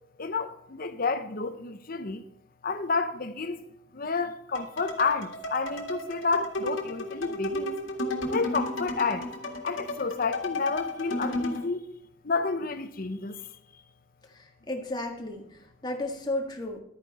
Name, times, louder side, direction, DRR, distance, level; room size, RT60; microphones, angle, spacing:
voice 1, 0.2-2.2 2.6-3.6 3.9-7.8 8.3-9.3 9.6-11.9 12.2-13.4, left 4 dB, 50° left, 0.9 m, -30 dB
sound 1, 4.5-11.7, left 1 dB, 75° left, 1.9 m, -33 dB
voice 2, 14.3-16.8, left 1 dB, 20° left, 1.7 m, -34 dB
12.0 x 9.6 x 4.2 m
head